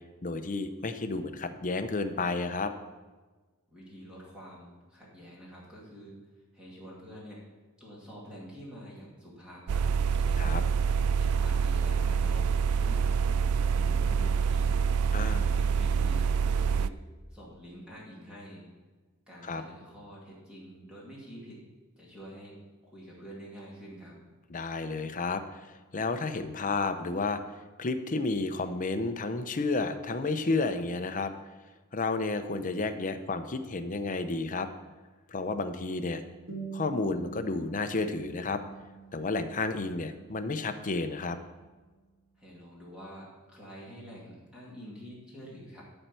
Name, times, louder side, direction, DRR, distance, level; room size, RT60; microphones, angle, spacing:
voice 1, 0.2-2.7 10.4-10.6 15.1-15.5 19.4-19.6 24.5-27.4 27.8-31.3 31.9-34.7 35.3-36.2 36.7-38.6 39.1-41.4, left 3 dB, 35° left, 8 dB, 0.6 m, -31 dB
voice 2, 3.7-6.2 6.5-7.5 7.8-9.9 10.2-10.6 11.1-14.7 15.4-16.9 17.3-18.7 19.3-21.7 22.0-22.6 22.8-24.2 42.4-45.8, equal, 5° right, -6 dB, 2.2 m, -47 dB
sound 1, 9.7-16.9, right 6 dB, 75° right, 0.3 m, -26 dB
sound 2, 36.5-41.5, right 5 dB, 45° right, 2.4 m, -46 dB
12.0 x 4.5 x 6.8 m, 1.3 s
head